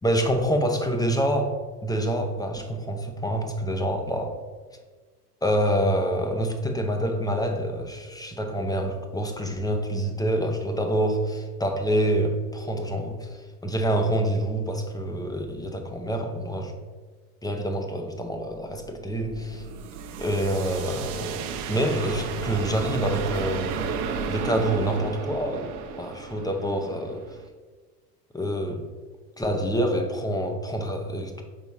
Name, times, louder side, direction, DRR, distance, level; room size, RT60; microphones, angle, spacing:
voice 1, 0.0-4.4 5.4-16.7 17.4-19.7 20.2-21.4 21.7-23.8 24.3-25.7 26.0-27.4 28.3-28.8 29.4-31.4, right 1 dB, 10° left, 4 dB, 0.7 m, -27 dB
sound 1, 18.5-27.4, right 6 dB, 65° right, 0.8 m, -33 dB
5.6 x 4.0 x 4.7 m, 1.4 s
hypercardioid pair, 85°, 48 cm